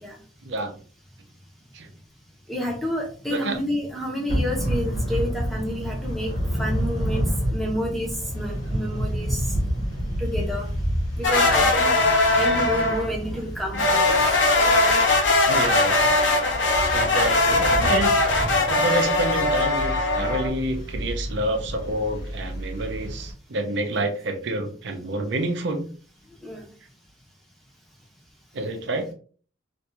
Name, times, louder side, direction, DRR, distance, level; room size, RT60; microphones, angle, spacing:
voice 1, 0.4-0.7 1.7-1.9 3.3-3.6 15.5-16.1 16.9-18.1 18.7-25.8 28.5-29.1, right 1 dB, 60° right, 5 dB, 0.5 m, -28 dB
voice 2, 2.5-9.5 10.2-10.7 11.2-14.1 17.3-17.4 23.9-24.0 26.4-26.7, equal, ahead, -1 dB, 0.6 m, -29 dB
Thunder / Rain, 4.3-23.3, equal, 50° left, 1.2 m, -30 dB
sound 1, 11.2-13.1 13.7-20.5, left 2 dB, 70° left, 0.7 m, -20 dB
2.5 x 2.3 x 2.8 m, 0.42 s
head